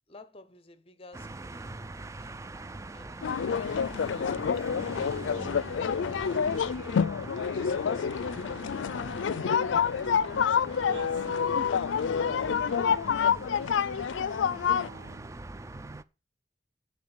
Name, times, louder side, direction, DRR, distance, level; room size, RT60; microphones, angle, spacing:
voice 1, 0.1-1.9 2.9-3.2 4.4-4.7, left 2 dB, 30° left, 0.9 m, -54 dB
sound 1, 1.1-16.0, right 2 dB, 15° right, 0.4 m, -43 dB
sound 2, 3.2-14.9, left 7 dB, 90° left, 0.4 m, -28 dB
voice 2, 10.8-11.7 12.4-13.0 14.6-15.6, right 2 dB, 80° right, 0.8 m, -46 dB
7.4 x 5.0 x 7.2 m
head